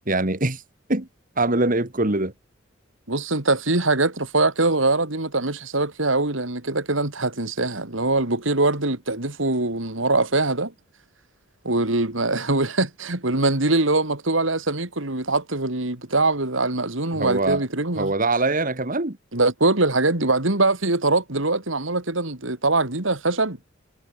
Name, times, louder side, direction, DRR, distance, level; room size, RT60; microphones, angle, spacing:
voice 1, 0.1-0.6 0.9-1.1 1.4-2.3 17.1-17.6 18.0-19.2, right 2 dB, 45° right, 2.5 m, -23 dB
voice 2, 3.1-10.7 11.6-18.1 19.3-23.6, right 2 dB, 75° right, 3.3 m, -23 dB
head